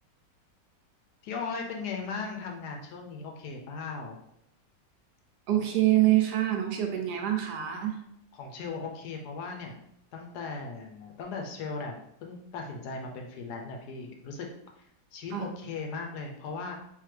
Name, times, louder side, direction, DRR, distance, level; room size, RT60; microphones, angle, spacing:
voice 1, 1.2-4.2 8.3-9.7 10.1-14.5 15.1-16.8, left 4 dB, 70° left, 2 dB, 1.0 m, -37 dB
voice 2, 5.5-8.0 15.3-15.5, right 13 dB, 75° right, 3 dB, 1.1 m, -25 dB
3.6 x 2.8 x 3.1 m, 0.73 s
omnidirectional pair, 1.9 m